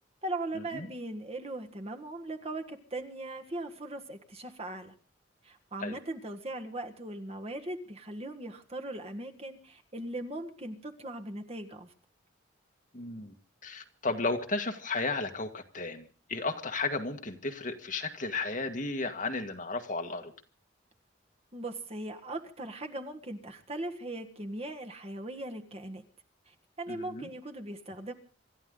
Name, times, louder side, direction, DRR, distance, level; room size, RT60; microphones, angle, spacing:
voice 1, 0.2-4.9 5.4-11.9 21.5-26.0 26.5-28.1, right 1 dB, 30° right, 1.5 m, -39 dB
voice 2, 12.9-13.3 13.6-20.3 26.9-27.3, left 3 dB, 40° left, 1.7 m, -34 dB
26.5 x 13.0 x 3.9 m
head